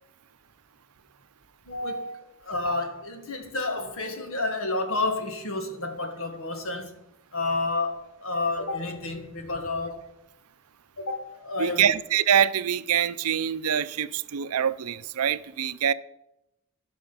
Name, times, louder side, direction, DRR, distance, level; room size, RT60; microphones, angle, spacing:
voice 1, 1.7-7.0 7.3-10.1 11.0-11.9, left 2 dB, 65° left, 1.7 m, -30 dB
voice 2, 11.6-15.9, right 9 dB, 85° right, 0.5 m, -24 dB
15.0 x 6.2 x 5.5 m
head